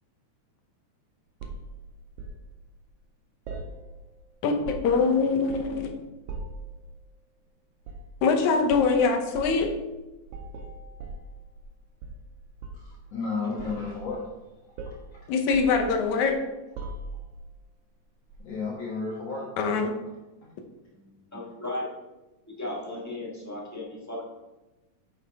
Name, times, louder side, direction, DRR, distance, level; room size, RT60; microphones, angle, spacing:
sound 1, 1.4-2.4 3.5-4.2 4.5-5.1 5.5-5.9 6.3-6.7 7.8-8.1 8.7-8.9 9.3-9.6 10.3-11.7 12.0-12.9 13.6-14.4 14.8-15.1 15.5-16.3 16.8-17.4 18.3-18.5, right 2 dB, 80° right, 2.4 m, -39 dB
voice 1, 4.4-5.9 8.2-9.7 15.3-16.3 19.6-19.9, left 4 dB, 75° left, 4 dB, 2.2 m, -23 dB
voice 2, 12.7-14.3 14.9-15.3 18.4-19.5, left 4 dB, 60° left, -6 dB, 2.3 m, -33 dB
voice 3, 21.3-21.9 22.6-24.2, left 1 dB, 15° left, -4 dB, 0.5 m, -35 dB
9.3 x 5.7 x 3.5 m, 1.1 s
omnidirectional pair, 3.5 m